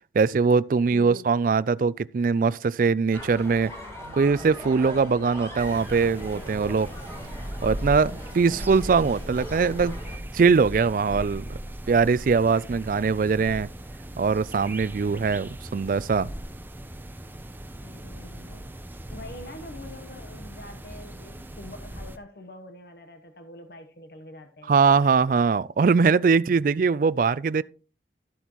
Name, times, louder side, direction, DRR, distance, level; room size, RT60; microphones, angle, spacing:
voice 1, 0.1-3.7 4.1-6.9 7.6-10.0 10.3-11.6 11.9-13.7 14.2-16.3 24.7-27.6, right 5 dB, 50° right, 0.3 m, -22 dB
voice 2, 0.9-1.3 8.5-8.8 17.8-18.7 19.1-24.8, left 1 dB, 60° left, 1.0 m, -45 dB
sound 1, 3.1-10.2, equal, 15° left, 4.1 m, -40 dB
sound 2, 5.6-22.2, right 1 dB, 10° right, 0.6 m, -38 dB
13.0 x 8.1 x 3.0 m
head